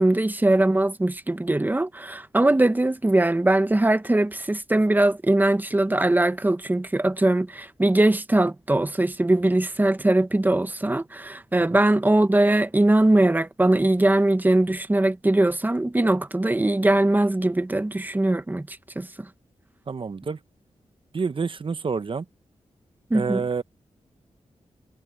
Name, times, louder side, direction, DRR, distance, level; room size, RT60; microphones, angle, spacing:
voice 1, 0.0-19.1 23.1-23.4, right 1 dB, 15° right, 0.9 m, -21 dB
voice 2, 19.9-20.4 21.1-22.2 23.1-23.6, right 5 dB, 45° right, 0.9 m, -28 dB
wide cardioid pair, 110°, 12 cm